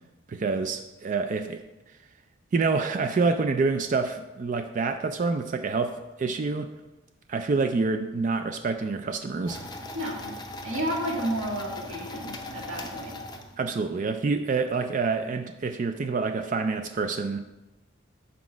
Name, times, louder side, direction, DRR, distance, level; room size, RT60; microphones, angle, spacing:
voice 1, 0.3-1.6 2.5-6.7 7.3-9.6 13.6-17.4, right 4 dB, 35° right, 7 dB, 0.3 m, -27 dB
sound 1, 9.4-13.9, left 1 dB, 20° left, 0.5 m, -39 dB
voice 2, 9.9-10.3 10.6-13.2, equal, 80° right, -1 dB, 1.7 m, -31 dB
5.9 x 4.8 x 6.1 m, 1.0 s
head